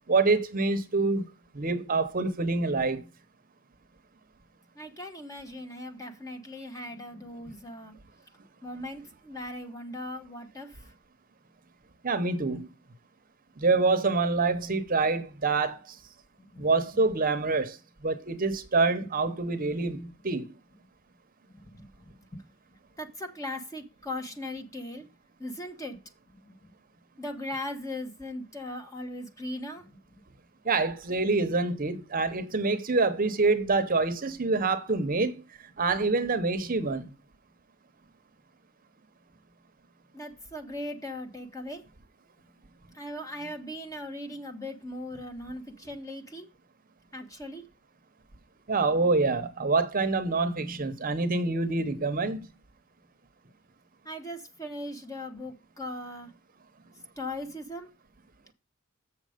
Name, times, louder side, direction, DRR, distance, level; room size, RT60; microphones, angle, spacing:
voice 1, 0.1-1.3 1.5-3.0 12.0-12.7 13.6-15.9 16.6-17.8 18.0-20.5 30.6-35.4 35.8-37.1 48.7-52.5, right 3 dB, 40° right, 0.9 m, -26 dB
voice 2, 4.7-7.9 8.6-10.9 16.4-17.0 21.5-22.4 23.0-25.0 25.4-26.0 26.4-26.7 27.2-30.0 40.1-41.8 42.9-46.5 47.1-47.6 54.0-56.3 57.2-57.9, left 1 dB, 15° left, 1.2 m, -39 dB
7.1 x 6.5 x 5.0 m
head